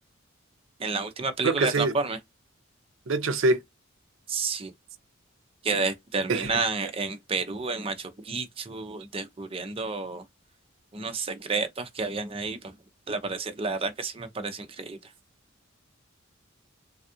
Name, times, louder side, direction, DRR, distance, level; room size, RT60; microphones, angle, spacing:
voice 1, 0.8-2.2 4.3-4.7 5.6-10.2 10.9-12.7 13.1-15.0, right 4 dB, 30° right, 0.6 m, -30 dB
voice 2, 1.4-1.9 3.1-3.6 6.3-6.5, right 2 dB, 70° right, 0.6 m, -24 dB
3.4 x 2.4 x 2.6 m
head